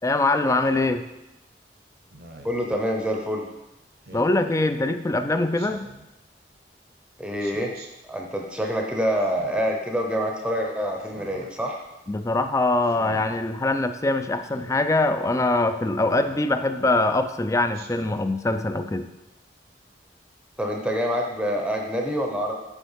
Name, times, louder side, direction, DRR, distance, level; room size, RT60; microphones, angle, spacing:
voice 1, 0.0-1.0 4.1-5.8 12.1-19.1, left 2 dB, 20° left, 9 dB, 0.4 m, -23 dB
Speech synthesizer, 0.7-1.0 2.1-2.6 4.0-4.4 5.5-6.1 7.4-7.9 9.2-9.7 11.0-11.5 12.8-13.2 14.4-14.8 16.1-16.5 17.7-18.2, right 2 dB, 60° right, 0.8 m, -44 dB
voice 2, 2.4-3.5 7.2-7.7 8.1-11.8 20.6-22.5, equal, 5° right, 1 dB, 0.7 m, -26 dB
7.2 x 4.1 x 5.6 m, 0.95 s
head